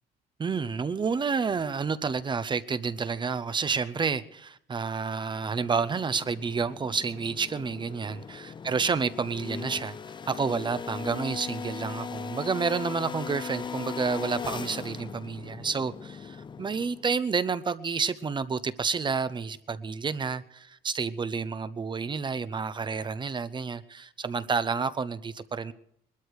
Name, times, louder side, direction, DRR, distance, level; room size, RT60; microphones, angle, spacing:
voice 1, 0.4-10.0 10.3-25.7, right 5 dB, 30° right, 0.7 m, -30 dB
sound 1, 5.4-17.2, left 6 dB, 25° left, 0.5 m, -39 dB
20.5 x 13.0 x 4.8 m
cardioid pair, 110°, 17 cm